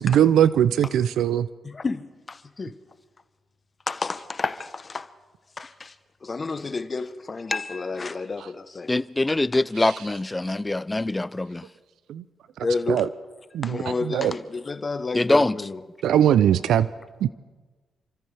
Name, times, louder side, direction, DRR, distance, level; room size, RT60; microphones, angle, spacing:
voice 1, 0.0-1.5 9.8-10.0 12.1-12.2 12.9-13.1 13.5-14.3 16.0-16.9 17.2-17.3, right 10 dB, 85° right, 0.4 m, -20 dB
voice 2, 1.6-2.8 3.9-5.1 5.6-5.9 6.2-9.0 12.6-13.0 13.6-15.8, left 4 dB, 35° left, 0.9 m, -30 dB
voice 3, 8.9-11.6 15.1-15.6, left 2 dB, 15° left, 0.4 m, -23 dB
29.5 x 14.0 x 3.3 m
cardioid pair, 85°, 0 cm